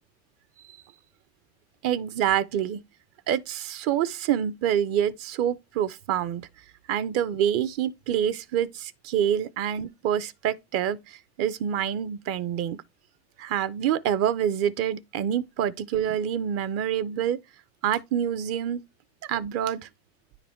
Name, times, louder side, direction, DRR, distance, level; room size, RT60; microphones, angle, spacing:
voice 1, 1.8-2.8 3.3-6.4 6.9-12.8 13.4-17.4 17.8-18.8 19.2-19.9, right 9 dB, 45° right, 0.7 m, -27 dB
9.7 x 4.0 x 4.5 m
supercardioid pair, 125°, 35 cm